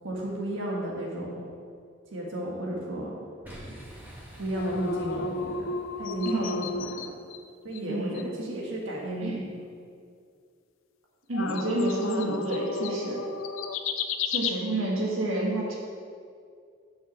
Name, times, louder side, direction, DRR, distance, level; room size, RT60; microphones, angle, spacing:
voice 1, 0.0-1.5 2.1-3.1 4.4-5.7 6.0-7.1 7.6-9.5, right 1 dB, 70° right, -3 dB, 1.7 m, -33 dB
Boom, 3.4-6.4, equal, 10° right, 1.7 m, -47 dB
sound 1, 4.5-7.4 7.7-7.8 8.1-8.2 11.3-14.5, left 4 dB, 85° left, 0.6 m, -32 dB
voice 2, 6.2-6.6 7.9-8.2 9.2-9.4 11.3-13.2 14.3-15.8, right 2 dB, 90° right, -3 dB, 1.7 m, -29 dB
7.1 x 6.3 x 7.4 m, 2.3 s
head